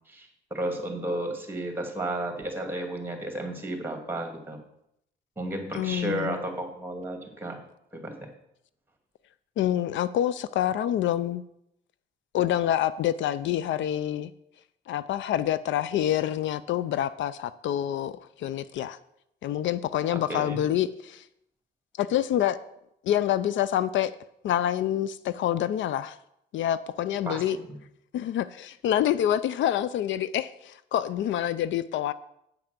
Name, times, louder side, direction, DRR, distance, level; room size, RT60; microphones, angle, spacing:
voice 1, 0.1-4.6 5.4-7.6 7.9-8.3 20.3-20.6 27.3-27.4 27.7-27.8, right 1 dB, 10° right, 4 dB, 2.3 m, -33 dB
voice 2, 5.7-6.3 9.6-11.4 12.3-14.3 14.9-19.0 19.4-21.3 22.0-22.6 23.0-24.2 24.4-26.2 26.5-27.6 28.1-32.1, left 11 dB, 70° left, 16 dB, 0.4 m, -27 dB
9.0 x 5.8 x 6.7 m, 0.78 s
cardioid pair, 90°, 20 cm